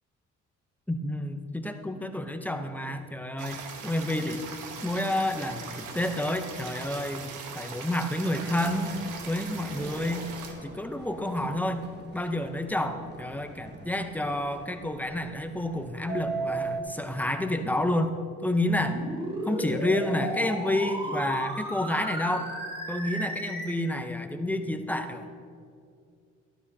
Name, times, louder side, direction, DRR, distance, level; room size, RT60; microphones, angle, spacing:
voice 1, 0.9-4.4 4.8-8.9 9.3-10.3 10.6-11.9 12.1-18.2 18.4-19.0 19.4-22.5 22.9-25.3, left 1 dB, 5° left, 6 dB, 0.7 m, -29 dB
sound 1, 3.4-10.5, right 5 dB, 90° right, 1.1 m, -40 dB
Subway metro underground, 8.4-16.8, right 4 dB, 35° right, 1.4 m, -40 dB
sound 2, 18.7-23.7, equal, 20° right, 2.3 m, -34 dB
12.5 x 12.0 x 2.8 m, 2.3 s
cardioid pair, 90°, 30 cm